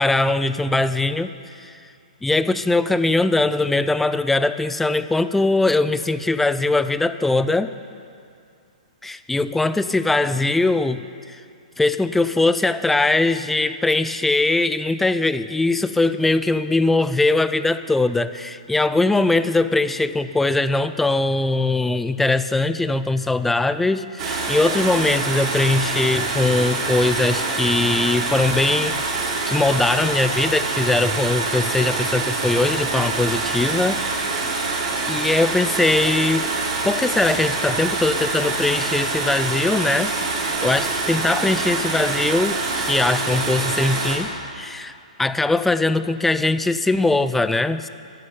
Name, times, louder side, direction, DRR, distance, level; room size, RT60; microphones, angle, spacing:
voice 1, 0.0-1.8 2.2-7.7 9.0-11.4 11.8-29.1 29.5-34.0 35.1-36.5 36.8-44.3 44.5-44.9 45.2-47.9, left 2 dB, 5° left, 13 dB, 0.3 m, -21 dB
sound 1, 24.2-44.2, right 3 dB, 40° right, 3.4 m, -25 dB
14.0 x 6.6 x 9.5 m, 2.4 s
hypercardioid pair, 145°, 4 cm